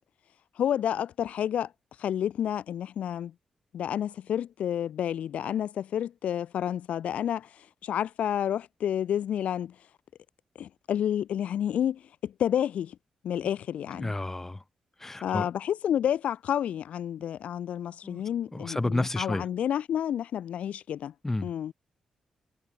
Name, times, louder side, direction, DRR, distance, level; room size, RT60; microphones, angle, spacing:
voice 1, 0.6-1.7 2.0-3.3 3.7-7.5 7.8-9.7 10.6-13.0 13.2-14.1 15.2-21.1 21.4-21.7, left 10 dB, 80° left, 0.4 m, -30 dB
voice 2, 14.0-14.6 15.0-15.5 18.0-18.2 18.5-19.5 21.2-21.5, left 2 dB, 15° left, 0.7 m, -30 dB
cardioid pair, 80°, 2 cm